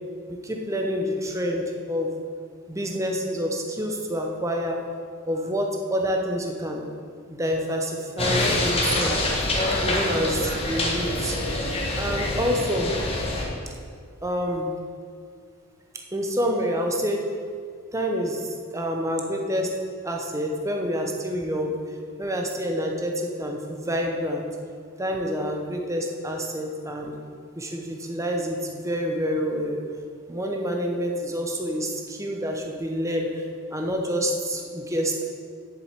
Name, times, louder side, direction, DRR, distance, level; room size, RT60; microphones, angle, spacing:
voice 1, 0.3-2.1 2.7-4.8 5.3-6.8 7.4-9.5 9.8-11.4 12.0-12.9 14.2-14.7 16.1-17.2 17.9-19.7 20.0-21.8 22.2-24.5 25.0-27.1 27.6-29.8 30.3-33.5 33.7-35.2, equal, 15° right, 1 dB, 0.9 m, -27 dB
sound 1, 8.2-13.4, left 2 dB, 25° left, 1.6 m, -25 dB
7.7 x 7.4 x 8.3 m, 2.1 s
head